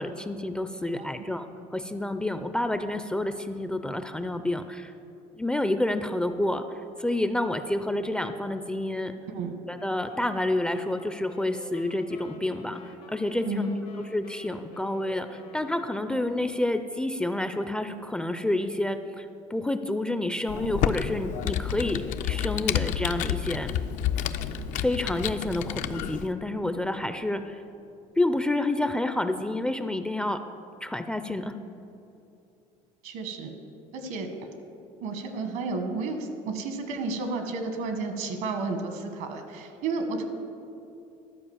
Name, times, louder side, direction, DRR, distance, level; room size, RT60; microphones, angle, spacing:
voice 1, 0.0-4.9 5.4-6.6 7.0-9.1 9.7-12.8 13.1-13.7 14.1-23.7 24.8-27.6 28.2-30.4 30.8-31.6, left 1 dB, 5° left, 9 dB, 0.4 m, -29 dB
sound 1, 9.9-17.1, left 4 dB, 80° left, 1.3 m, -50 dB
voice 2, 13.4-13.8 33.0-33.6 33.9-34.3 35.0-40.3, right 3 dB, 75° right, 6 dB, 1.3 m, -32 dB
Computer keyboard, 20.5-26.3, left 10 dB, 65° left, 0.5 m, -30 dB
12.5 x 4.8 x 7.1 m, 2.7 s
cardioid pair, 115°, 14 cm